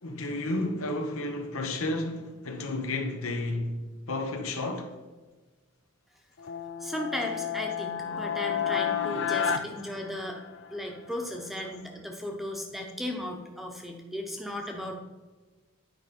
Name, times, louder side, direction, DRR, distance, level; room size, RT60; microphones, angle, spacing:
voice 1, 0.0-4.9, left 2 dB, 85° left, 1.2 m, -32 dB
sound 1, 6.4-10.8, left 8 dB, 55° left, 0.4 m, -31 dB
voice 2, 6.8-10.4 10.7-15.0, left 1 dB, ahead, 0.9 m, -36 dB
9.7 x 5.2 x 4.3 m
head